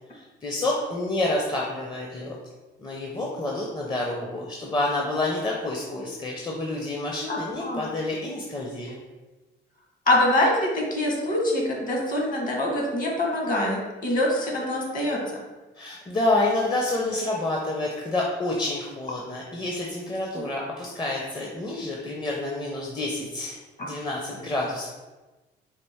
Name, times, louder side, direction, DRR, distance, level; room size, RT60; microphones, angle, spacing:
voice 1, 0.1-2.4 2.8-9.0 15.8-23.6 23.8-24.9, left 2 dB, 20° left, -2 dB, 0.6 m, -28 dB
voice 2, 7.3-7.8 10.1-15.2 20.3-20.4, left 1 dB, 45° left, -1 dB, 1.2 m, -24 dB
4.3 x 2.5 x 3.4 m, 1.2 s
cardioid pair, 90°, 20 cm